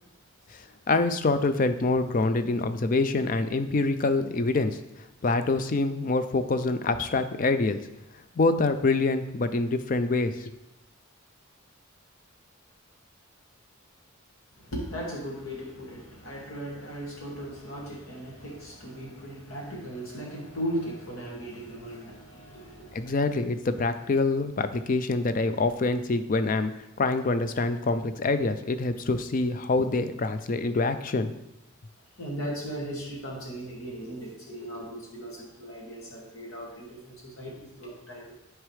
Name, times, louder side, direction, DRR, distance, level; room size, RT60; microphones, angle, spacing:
voice 1, 0.9-4.8 5.2-7.8 8.4-10.5 22.9-31.3, left 3 dB, 40° left, 10 dB, 0.4 m, -25 dB
voice 2, 14.6-23.2 32.2-38.3, equal, 85° left, -3 dB, 2.2 m, -37 dB
9.3 x 4.6 x 3.3 m, 0.87 s
head